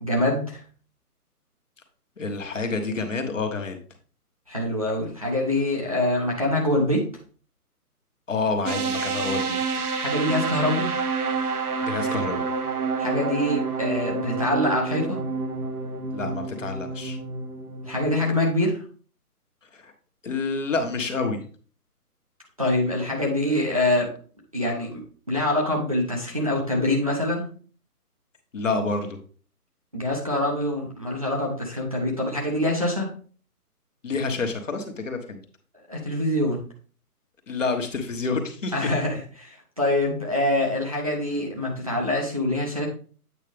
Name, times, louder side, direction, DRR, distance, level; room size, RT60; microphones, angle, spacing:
voice 1, 0.0-0.6 4.5-7.0 10.0-10.9 13.0-15.2 17.8-18.8 22.6-24.1 24.5-25.0 25.3-27.5 29.9-33.1 35.9-36.6 38.7-42.9, left 1 dB, 25° right, -3 dB, 0.8 m, -25 dB
voice 2, 2.2-3.8 8.3-9.8 11.9-12.5 16.1-17.2 19.7-19.9 20.2-21.4 28.5-29.2 34.0-35.4 37.5-38.9, left 4 dB, 55° left, 5 dB, 1.3 m, -28 dB
sound 1, 8.7-18.5, right 4 dB, 70° right, 1.2 m, -28 dB
8.4 x 4.6 x 3.4 m, 0.42 s
hypercardioid pair, 175°, 46 cm